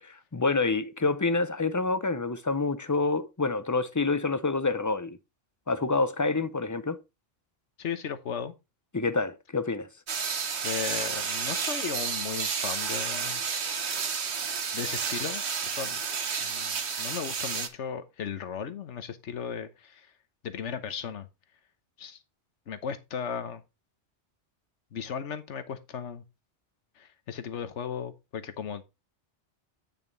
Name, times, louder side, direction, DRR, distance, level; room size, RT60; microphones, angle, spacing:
voice 1, 0.0-5.2 5.7-7.0 8.9-9.9, left 3 dB, 20° left, 0.5 m, -27 dB
voice 2, 7.8-8.5 10.6-13.4 14.7-16.0 16.4-20.1 20.4-21.3 22.0-22.2 22.7-23.6 24.9-26.2 27.0-28.8, left 7 dB, 75° left, 1.3 m, -36 dB
sound 1, 10.1-17.7, right 6 dB, 65° right, 1.3 m, -31 dB
9.1 x 5.8 x 4.0 m
omnidirectional pair, 1.2 m